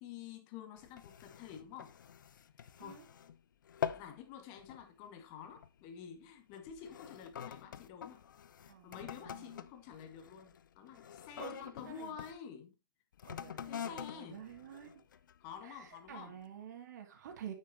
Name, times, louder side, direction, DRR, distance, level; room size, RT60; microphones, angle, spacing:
voice 1, 0.0-1.9 2.8-3.0 3.9-8.2 8.6-12.8 13.7-14.4 15.4-16.4, left 8 dB, 35° left, 1.9 m, -49 dB
sound 1, 0.8-3.4 3.6-4.2 4.6-4.9 5.6-5.8 6.5-12.4 13.1-15.5 16.1-16.2, left 8 dB, 60° left, 0.7 m, -45 dB
voice 2, 8.7-9.5 11.4-12.2 13.2-15.0 15.6-17.5, right 9 dB, 50° right, 2.5 m, -50 dB
9.4 x 7.3 x 2.9 m
figure-of-eight pair, 120°, 12 cm